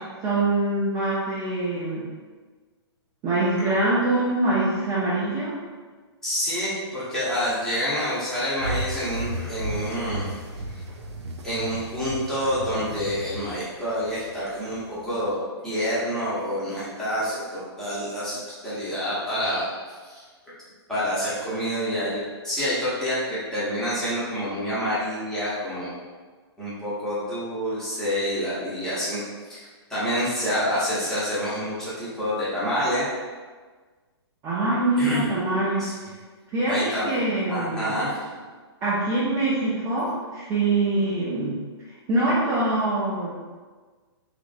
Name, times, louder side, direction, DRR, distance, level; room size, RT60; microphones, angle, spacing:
voice 1, 0.2-2.1 3.2-5.6 34.4-35.9 36.5-38.1 38.8-41.6 41.9-43.3, right 2 dB, 20° right, -10 dB, 0.5 m, -24 dB
voice 2, 6.2-10.4 11.4-15.4 15.6-19.7 20.0-20.2 20.9-22.2 22.4-25.9 26.6-29.2 29.9-33.0 35.0-35.3 35.8-35.9 36.7-37.1 37.5-38.2, equal, 5° left, -12 dB, 0.8 m, -27 dB
sound 1, 8.6-15.3, right 1 dB, 85° right, 0.4 m, -34 dB
3.0 x 2.5 x 2.5 m, 1.4 s
hypercardioid pair, 150°, 14 cm